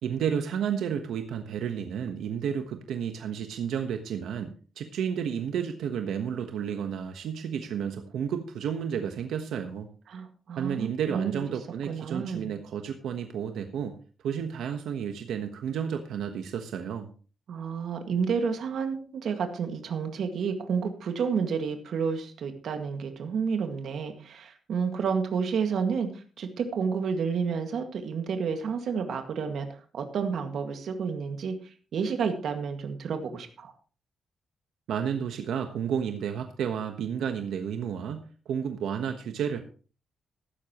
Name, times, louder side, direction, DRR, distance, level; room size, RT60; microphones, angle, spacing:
voice 1, 0.0-9.9 10.6-14.0 14.2-17.1 34.9-39.6, right 8 dB, 90° right, 6 dB, 1.2 m, -31 dB
voice 2, 10.1-11.4 11.9-12.6 17.5-33.7, right 6 dB, 60° right, 6 dB, 2.0 m, -30 dB
15.0 x 12.5 x 3.1 m, 0.38 s
wide cardioid pair, 170°, 0 cm